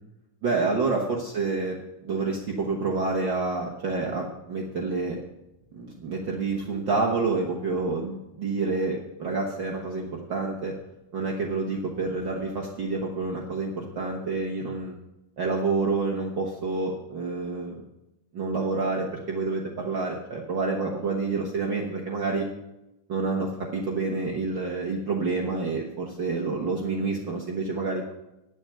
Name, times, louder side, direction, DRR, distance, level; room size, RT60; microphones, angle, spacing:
voice 1, 0.4-1.8 2.0-5.2 5.7-10.7 11.1-14.9 15.4-17.8 18.3-22.5 23.1-28.1, right 3 dB, 60° right, -2 dB, 1.3 m, -28 dB
10.5 x 8.1 x 6.8 m, 0.93 s
omnidirectional pair, 3.8 m